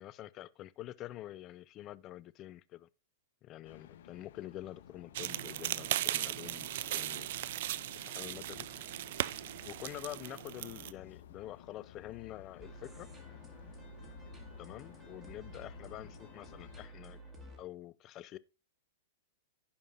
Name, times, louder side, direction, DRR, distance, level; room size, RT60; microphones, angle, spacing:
voice 1, 0.0-2.9 3.4-7.3 7.9-8.7 9.1-9.3 9.6-13.1 14.6-17.2 17.6-18.4, left 14 dB, 35° left, 0.6 m, -47 dB
sound 1, 3.6-16.9, left 11 dB, 75° left, 1.4 m, -55 dB
sound 2, 5.1-10.9, right 14 dB, 65° right, 0.5 m, -37 dB
sound 3, 12.6-17.6, right 2 dB, 15° right, 2.1 m, -52 dB
16.0 x 5.3 x 2.6 m
hypercardioid pair, 130°, 0 cm